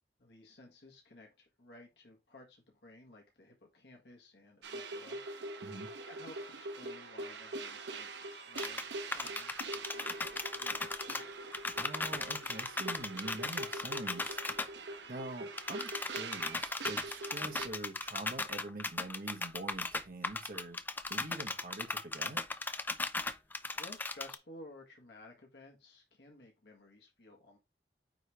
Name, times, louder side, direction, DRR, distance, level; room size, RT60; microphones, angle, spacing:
voice 1, 0.2-5.6 6.0-11.4 23.3-27.6, left 2 dB, 70° left, 1.6 m, -56 dB
sound 1, 4.6-17.7, right 2 dB, 80° right, 0.9 m, -43 dB
sound 2, 8.6-8.8 9.1-11.2 11.5-14.7 15.6-24.3, left 3 dB, 10° left, 0.4 m, -37 dB
voice 2, 11.8-14.7 15.1-20.8 21.1-22.4, right 2 dB, 55° right, 1.4 m, -45 dB
9.1 x 3.3 x 3.4 m
head